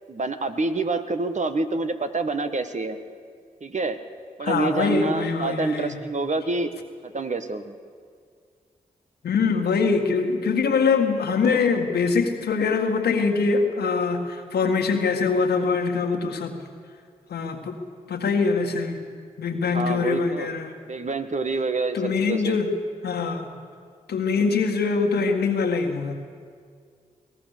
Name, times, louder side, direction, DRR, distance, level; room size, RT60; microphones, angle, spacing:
voice 1, 0.1-3.0 3.6-4.0 4.4-6.7 7.0-7.8 19.7-20.5 20.9-22.6, right 3 dB, 45° right, 8 dB, 1.5 m, -27 dB
voice 2, 4.4-6.0 9.2-16.6 17.3-17.8 18.1-19.0 19.4-20.7 21.9-22.7 23.0-23.5 24.1-26.1, left 4 dB, 80° left, 4 dB, 1.8 m, -23 dB
22.0 x 17.5 x 6.7 m, 2.1 s
supercardioid pair, 40°, 16 cm